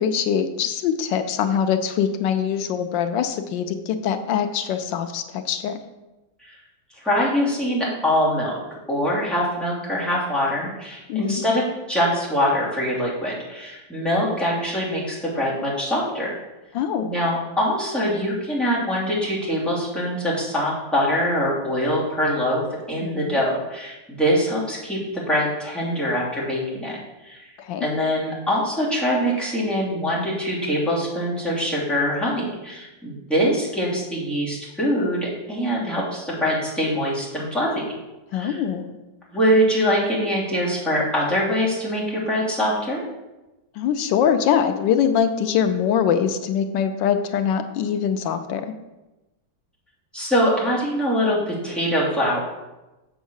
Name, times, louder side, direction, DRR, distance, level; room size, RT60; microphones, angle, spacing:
voice 1, 0.0-5.8 11.1-11.4 16.7-17.1 23.0-23.3 27.6-27.9 38.3-38.8 43.8-48.7, left 8 dB, 90° left, 8 dB, 1.4 m, -23 dB
voice 2, 6.9-16.3 17.0-27.4 27.8-37.8 38.3-38.6 39.3-43.0 50.1-52.4, equal, ahead, -7 dB, 2.9 m, -23 dB
7.1 x 6.4 x 6.4 m, 1.0 s
omnidirectional pair, 1.9 m